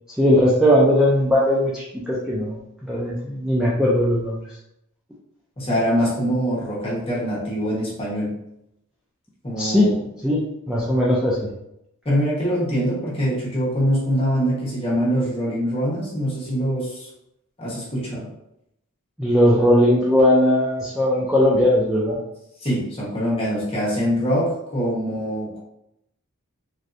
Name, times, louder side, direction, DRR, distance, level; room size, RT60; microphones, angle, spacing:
voice 1, 0.2-4.4 9.6-9.9 10.2-11.5 19.2-22.2, equal, 5° right, -7 dB, 0.4 m, -19 dB
voice 2, 5.6-8.3 9.4-10.0 12.0-17.1 17.6-18.3 22.6-25.6, equal, 25° left, -7 dB, 1.1 m, -23 dB
3.3 x 2.6 x 2.5 m, 0.81 s
head